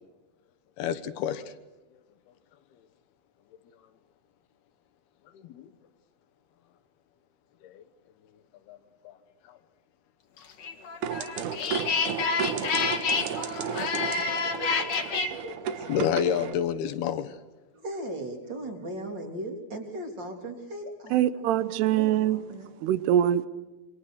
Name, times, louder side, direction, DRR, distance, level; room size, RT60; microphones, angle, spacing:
voice 1, 0.8-1.4 5.4-5.7 7.6-7.8 8.7-8.8 9.0-9.1 9.5-9.6 11.2-11.8 12.3-12.4 12.8-14.4 15.1-17.3, left 9 dB, 75° left, 11 dB, 3.1 m, -32 dB
sound 1, 10.6-15.3, left 5 dB, 50° left, 2.5 m, -28 dB
sound 2, 11.0-16.5, right 8 dB, 65° right, 2.3 m, -33 dB
voice 2, 17.7-21.5 21.9-22.7, right 1 dB, 30° right, 3 dB, 3.6 m, -37 dB
voice 3, 21.1-22.4 22.8-23.5, right 11 dB, 85° right, 14 dB, 3.1 m, -23 dB
27.5 x 26.0 x 6.5 m, 1.1 s
omnidirectional pair, 4.7 m